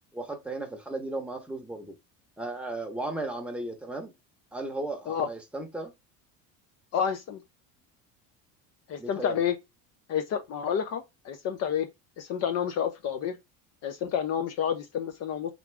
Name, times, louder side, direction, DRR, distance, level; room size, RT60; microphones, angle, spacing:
voice 1, 0.1-1.9 2.4-4.1 4.5-5.9 9.0-9.4, right 2 dB, 5° right, 0.8 m, -35 dB
voice 2, 6.9-7.4 8.9-9.5 10.1-11.9 12.2-13.4 13.8-15.5, left 8 dB, 45° left, 0.5 m, -29 dB
3.7 x 3.5 x 3.3 m
cardioid pair, 150°, 37 cm